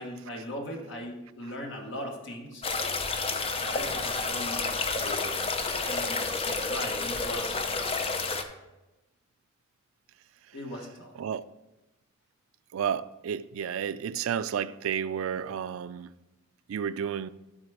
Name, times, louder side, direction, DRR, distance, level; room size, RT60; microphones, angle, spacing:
voice 1, 0.0-2.6 3.6-5.4 5.9-8.0 10.5-11.1, equal, 65° left, 1.6 m, -39 dB
sound 1, 2.6-8.4, left 4 dB, 30° left, 0.6 m, -30 dB
voice 2, 12.7-16.1 16.7-17.3, right 8 dB, 80° right, 0.4 m, -31 dB
11.5 x 4.2 x 4.9 m
head